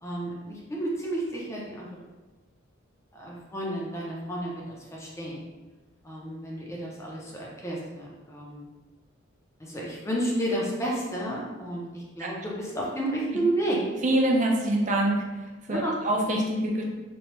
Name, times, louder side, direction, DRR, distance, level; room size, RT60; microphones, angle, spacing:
voice 1, 0.0-1.9 3.1-4.6 4.9-5.4 6.0-8.7 9.6-13.8 15.7-15.9, right 1 dB, 15° left, -4 dB, 0.5 m, -31 dB
voice 2, 14.0-15.4 15.7-16.8, right 1 dB, 40° right, 0 dB, 0.4 m, -25 dB
3.0 x 2.2 x 2.9 m, 1.2 s
head